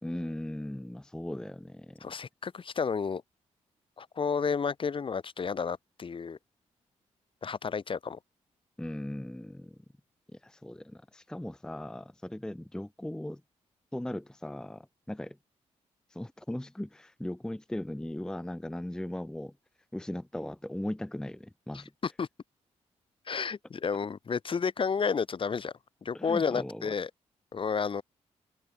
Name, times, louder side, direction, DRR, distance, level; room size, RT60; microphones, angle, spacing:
voice 1, 0.0-2.0 8.8-9.8 10.3-13.4 13.9-15.4 16.1-19.5 19.9-21.9 26.1-26.9, left 1 dB, 5° left, 0.6 m, -38 dB
voice 2, 2.0-3.2 4.0-6.4 7.4-8.2 21.7-22.3 23.3-25.7 26.0-27.1 27.5-28.0, left 5 dB, 45° left, 1.3 m, -31 dB
open air
cardioid pair, 65°, 12 cm